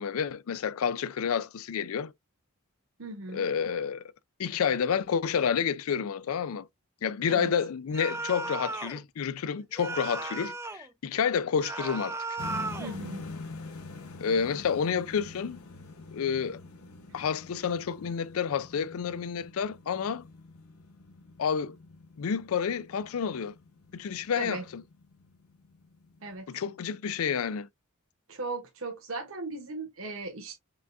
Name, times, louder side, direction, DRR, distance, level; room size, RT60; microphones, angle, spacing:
voice 1, 0.0-2.1 3.3-4.0 4.4-6.7 7.0-12.2 14.2-15.6 16.1-16.6 17.1-20.2 21.4-21.8 22.2-23.5 23.9-24.8 26.5-27.7, left 7 dB, 70° left, 0.4 m, -29 dB
voice 2, 3.0-3.5 7.3-7.5 12.8-13.3 24.4-24.6 26.2-26.5 28.3-30.5, right 3 dB, 65° right, 1.1 m, -37 dB
sound 1, 7.9-9.0 9.8-10.9 11.6-13.0, right 3 dB, 10° right, 0.4 m, -35 dB
sound 2, 12.4-26.4, left 3 dB, 85° left, 1.2 m, -46 dB
5.0 x 3.4 x 2.7 m
head